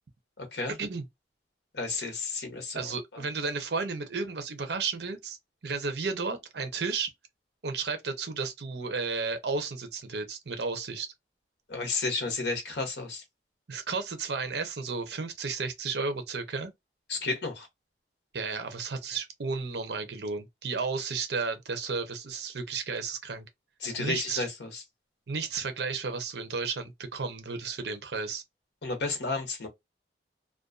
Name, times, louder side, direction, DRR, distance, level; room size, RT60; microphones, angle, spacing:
voice 1, 0.4-0.8 1.7-3.2 11.7-13.2 17.1-17.7 23.8-24.8 28.8-29.7, left 3 dB, 75° left, 0.8 m, -32 dB
voice 2, 2.7-5.4 5.6-7.1 7.6-11.1 13.7-16.7 18.3-23.5 24.0-24.4 25.3-28.4, right 4 dB, 70° right, 0.7 m, -33 dB
2.5 x 2.2 x 2.4 m
head